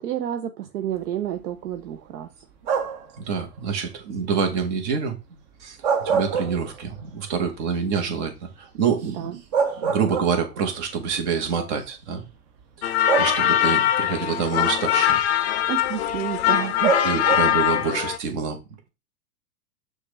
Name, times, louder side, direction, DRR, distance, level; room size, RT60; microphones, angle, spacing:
voice 1, 0.0-2.3 9.2-9.3 15.7-17.0, right 11 dB, 70° right, 0.7 m, -30 dB
sound 1, 2.6-3.1 5.6-7.0 7.4-7.5 9.0-9.1 9.5-10.7 11.7-11.8 13.1-13.8 16.8-17.7, right 6 dB, 30° right, 0.5 m, -25 dB
voice 2, 3.2-5.1 5.6-5.8 6.0-9.4 9.8-12.3 12.9-15.2 17.0-18.6, right 6 dB, 45° right, 1.3 m, -26 dB
sound 2, 12.8-18.2, left 11 dB, 45° left, 0.5 m, -22 dB
6.2 x 2.5 x 3.2 m
hypercardioid pair, 130°, 48 cm